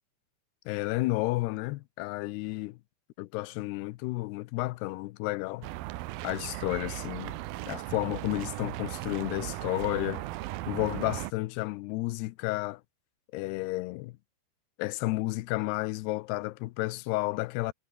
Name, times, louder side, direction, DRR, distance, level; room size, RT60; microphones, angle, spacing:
voice 1, 0.7-2.8 3.2-5.7 6.2-7.4 7.7-10.3 10.7-12.8 13.3-14.1 14.8-17.7, left 20 dB, 80° left, 2.5 m, -32 dB
sound 1, 5.6-11.3, right 17 dB, 75° right, 2.2 m, -37 dB
omnidirectional pair, 5.1 m